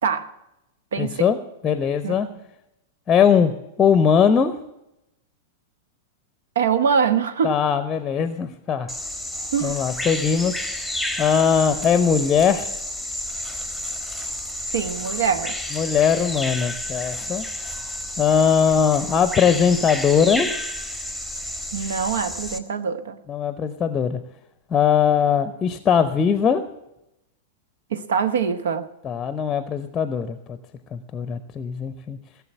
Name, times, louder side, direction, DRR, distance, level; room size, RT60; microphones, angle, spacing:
voice 1, 0.0-0.3 0.9-1.3 2.0-2.4 6.5-7.6 9.5-9.8 14.7-15.6 21.7-23.2 27.9-28.9, right 6 dB, 60° right, 11 dB, 1.1 m, -24 dB
voice 2, 1.0-1.4 1.6-2.3 3.1-3.5 3.8-4.5 7.4-8.9 9.6-10.6 11.2-12.8 15.7-17.4 18.2-20.5 23.3-24.2 24.7-26.6 29.0-30.6 30.9-32.2, left 7 dB, 20° left, 11 dB, 0.8 m, -20 dB
Bird vocalization bird call bird song, 8.9-22.6, left 1 dB, 5° right, 1.4 m, -31 dB
16.5 x 7.2 x 8.7 m, 0.88 s
figure-of-eight pair, 95°, 0 cm